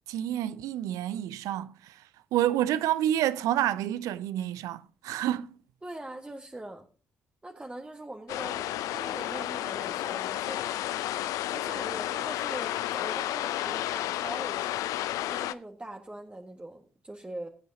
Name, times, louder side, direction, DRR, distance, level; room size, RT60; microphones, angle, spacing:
voice 1, 0.1-5.6, right 12 dB, 65° right, 0.6 m, -29 dB
voice 2, 5.8-6.8 7.4-10.9 11.2-14.7 15.3-17.5, right 1 dB, 15° right, 1.7 m, -42 dB
sound 1, 8.3-15.5, left 13 dB, 65° left, 0.5 m, -32 dB
21.0 x 9.2 x 2.8 m
figure-of-eight pair, 40°, 6 cm